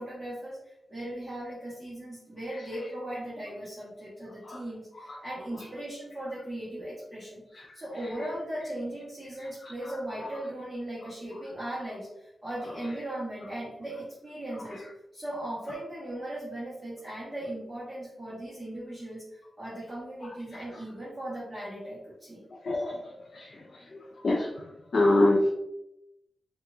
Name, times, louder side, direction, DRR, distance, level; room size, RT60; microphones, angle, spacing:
voice 1, 0.0-7.4 7.7-14.8 15.1-22.4, right 1 dB, 15° right, -10 dB, 1.1 m, -38 dB
voice 2, 2.5-2.9 4.4-4.6 4.9-5.7 7.5-8.3 9.4-10.3 14.6-14.9 20.2-20.8 22.5-25.5, left 2 dB, 60° left, -1 dB, 0.5 m, -30 dB
4.2 x 2.3 x 2.5 m, 0.86 s
wide cardioid pair, 100°, 0 cm